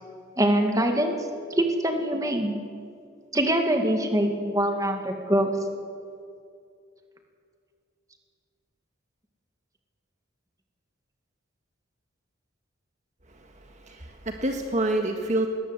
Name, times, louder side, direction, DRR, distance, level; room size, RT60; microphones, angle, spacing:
voice 1, 0.4-1.2 1.5-2.6 3.3-5.5, right 1 dB, 15° right, 4 dB, 2.0 m, -24 dB
voice 2, 13.3-15.5, right 1 dB, 35° right, 3 dB, 1.6 m, -28 dB
20.5 x 18.5 x 8.1 m, 2.3 s
head